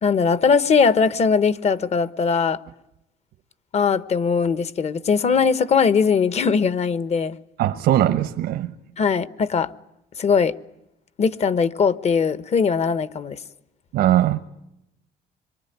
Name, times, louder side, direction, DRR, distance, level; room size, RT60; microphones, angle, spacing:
voice 1, 0.0-2.6 3.7-7.4 9.0-9.7 10.2-10.5 11.2-13.4, left 5 dB, 40° left, 1.1 m, -20 dB
voice 2, 7.6-8.7 13.9-14.4, right 12 dB, 80° right, 1.2 m, -20 dB
26.0 x 23.5 x 9.3 m
cardioid pair, 110°, 17 cm